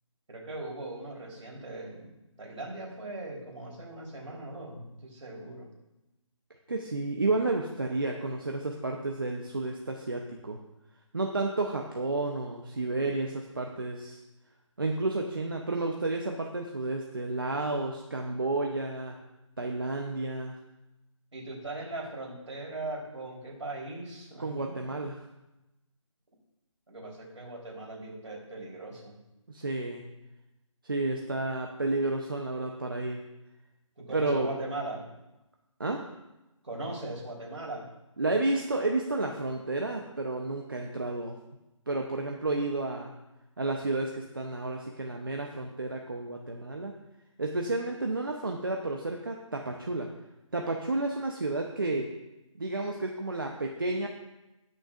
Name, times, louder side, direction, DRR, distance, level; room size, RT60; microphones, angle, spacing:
voice 1, 0.3-2.1 2.4-5.7 21.3-25.0 26.9-29.2 34.0-35.1 36.6-37.9, right 2 dB, 60° right, -2 dB, 3.6 m, -39 dB
voice 2, 6.7-10.6 11.1-14.2 14.8-19.2 19.6-20.6 24.4-25.2 29.5-30.0 30.8-33.2 34.1-34.5 35.8-36.0 38.2-41.4 41.9-43.1 43.6-46.9 47.4-50.1 50.5-52.1 52.5-54.1, right 2 dB, 40° right, 2 dB, 0.8 m, -31 dB
19.5 x 6.5 x 2.5 m, 0.97 s
figure-of-eight pair, 180°, 17 cm